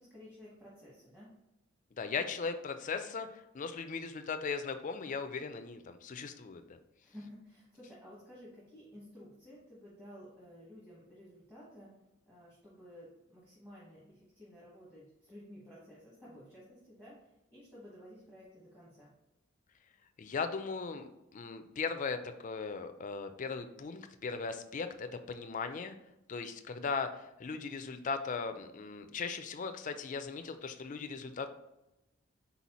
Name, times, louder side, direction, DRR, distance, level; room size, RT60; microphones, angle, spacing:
voice 1, 0.0-1.3 7.0-12.0 12.2-19.1, equal, 10° right, -8 dB, 1.1 m, -53 dB
voice 2, 2.0-3.3 3.5-6.8 20.2-25.9 26.3-31.5, left 5 dB, 40° left, 8 dB, 0.4 m, -38 dB
4.1 x 4.0 x 3.0 m, 0.91 s
head